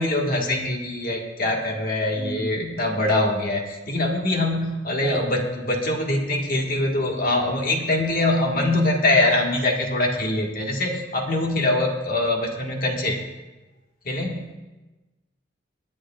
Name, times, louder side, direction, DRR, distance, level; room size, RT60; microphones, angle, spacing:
voice 1, 0.0-13.2 14.0-14.5, left 2 dB, 45° left, 1 dB, 1.7 m, -23 dB
voice 2, 2.1-2.6 5.0-5.2, right 2 dB, 35° right, 1 dB, 1.4 m, -32 dB
23.5 x 9.5 x 2.4 m, 1.1 s
head